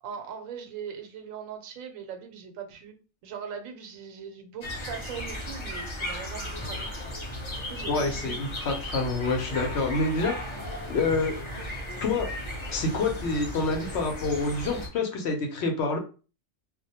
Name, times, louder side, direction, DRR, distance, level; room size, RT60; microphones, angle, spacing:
voice 1, 0.0-3.0 3.2-6.9 7.5-8.4, right 7 dB, 90° right, 5 dB, 1.0 m, -40 dB
Old City Ambience, 4.6-14.9, equal, 40° left, 0.4 m, -36 dB
voice 2, 7.9-10.4 10.9-11.5 12.0-12.3 12.7-16.0, left 3 dB, 65° left, 3 dB, 0.8 m, -27 dB
2.2 x 2.1 x 2.7 m, 0.35 s
omnidirectional pair, 1.3 m